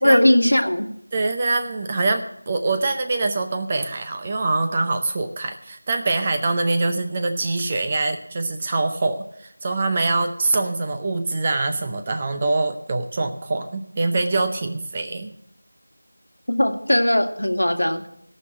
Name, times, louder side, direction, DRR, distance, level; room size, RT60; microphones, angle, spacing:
voice 1, 0.0-0.9 16.5-18.0, left 1 dB, 90° left, 6 dB, 1.9 m, -18 dB
voice 2, 1.1-15.3, right 3 dB, 20° right, 6 dB, 0.6 m, -24 dB
17.5 x 6.1 x 8.6 m, 0.73 s
figure-of-eight pair, 175°, 0 cm